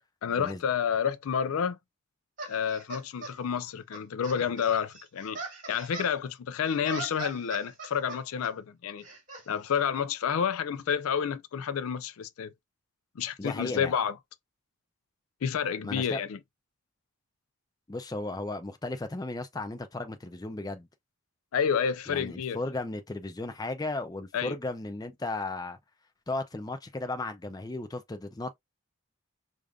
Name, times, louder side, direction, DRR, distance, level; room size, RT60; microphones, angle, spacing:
voice 1, 0.2-1.8 2.5-5.4 5.7-9.0 9.5-12.5 13.2-14.1 15.4-16.4 21.5-22.6 24.3-24.6, left 7 dB, 75° left, 0.4 m, -29 dB
sound 1, 2.4-3.3 3.9-6.1 6.7-8.5 9.0-9.4, right 3 dB, 35° right, 1.7 m, -41 dB
voice 2, 13.4-13.9 15.8-16.2 17.9-20.9 22.1-25.8 26.3-28.6, left 2 dB, 15° left, 0.4 m, -35 dB
5.0 x 2.5 x 2.3 m
head